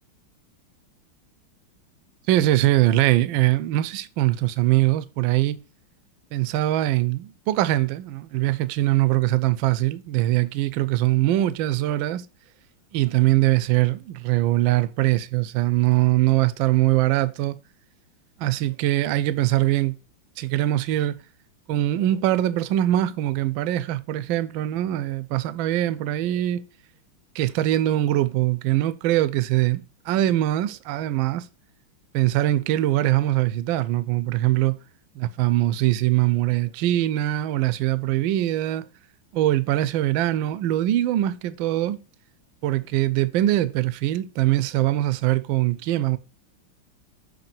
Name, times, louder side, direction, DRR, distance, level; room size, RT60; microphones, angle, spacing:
voice 1, 2.3-5.6 6.3-12.3 12.9-17.6 18.4-20.0 20.4-21.2 21.7-26.6 27.3-31.5 32.1-34.8 35.2-38.9 39.3-42.0 42.6-46.2, right 15 dB, 75° right, 1.2 m, -22 dB
7.1 x 3.3 x 5.6 m
omnidirectional pair, 2.4 m